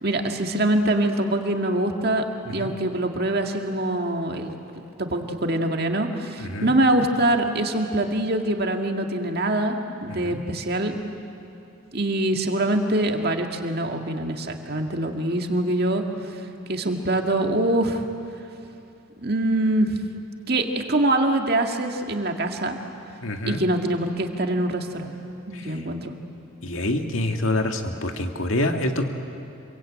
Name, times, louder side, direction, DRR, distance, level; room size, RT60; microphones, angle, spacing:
voice 1, 0.0-11.1 11.9-16.4 16.7-18.0 19.2-20.0 20.5-22.8 23.5-25.1 25.5-26.1, right 1 dB, 50° right, 3 dB, 2.0 m, -24 dB
voice 2, 6.4-6.7 10.1-10.4 23.2-23.6 25.5-25.6 26.6-29.2, left 1 dB, 85° left, 4 dB, 2.0 m, -26 dB
26.0 x 23.5 x 8.8 m, 2.7 s
head